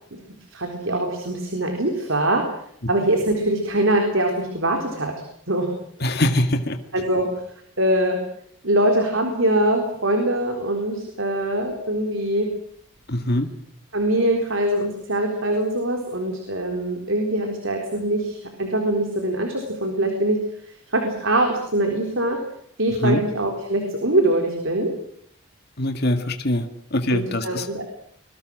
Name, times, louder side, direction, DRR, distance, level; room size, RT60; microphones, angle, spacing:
voice 1, 0.5-2.6 2.9-5.1 5.5-5.7 6.9-7.4 7.8-8.2 8.6-12.5 13.9-20.4 20.6-22.4 22.8-24.9 27.1-27.8, right 1 dB, 60° right, 3 dB, 4.0 m, -23 dB
voice 2, 6.0-6.8 13.1-13.5 23.0-23.2 25.8-27.7, left 1 dB, 45° left, 6 dB, 2.0 m, -23 dB
26.0 x 22.5 x 6.4 m, 0.66 s
head